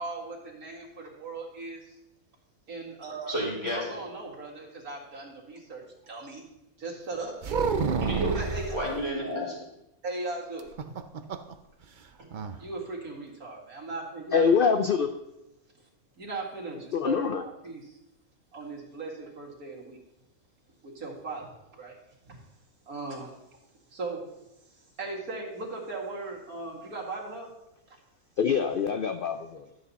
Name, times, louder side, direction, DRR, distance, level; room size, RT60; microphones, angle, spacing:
voice 1, 0.0-2.0 2.7-3.3 3.7-6.4 6.8-8.1 8.3-8.8 10.0-10.7 12.2-12.3 12.6-14.4 16.2-18.0 18.5-20.0 20.8-21.5 21.7-22.0 22.3-22.4 22.9-23.3 23.9-24.2 25.0-27.5, right 3 dB, 85° right, -2 dB, 2.5 m, -38 dB
voice 2, 3.3-3.9 8.0-9.6, equal, 20° left, -6 dB, 4.6 m, -31 dB
sound 1, 7.4-8.9 10.6-11.5 11.8-11.9 12.3-12.6, right 5 dB, 50° right, 0.6 m, -29 dB
voice 3, 14.3-15.1 16.9-17.4 28.4-29.7, left 6 dB, 60° left, 8 dB, 0.6 m, -24 dB
12.5 x 7.8 x 4.1 m, 0.89 s
omnidirectional pair, 1.5 m